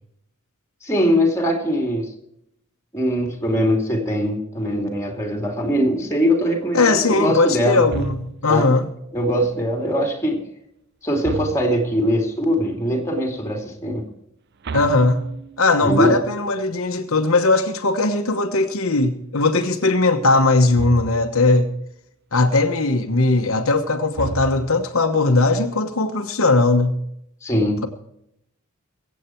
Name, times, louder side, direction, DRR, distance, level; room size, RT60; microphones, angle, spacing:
voice 1, 0.8-2.1 2.9-7.9 8.5-8.7 9.1-10.4 11.0-14.0 15.8-16.2 27.4-27.9, equal, 15° left, 2.7 m, -21 dB
voice 2, 6.7-8.9 14.7-15.2 15.6-21.7 22.3-27.0, left 3 dB, 70° left, 1.2 m, -19 dB
sound 1, 7.9-8.7 11.2-12.0 14.6-15.8 20.8-21.4 24.1-25.0, right 4 dB, 50° right, 0.5 m, -32 dB
23.0 x 8.4 x 4.5 m
head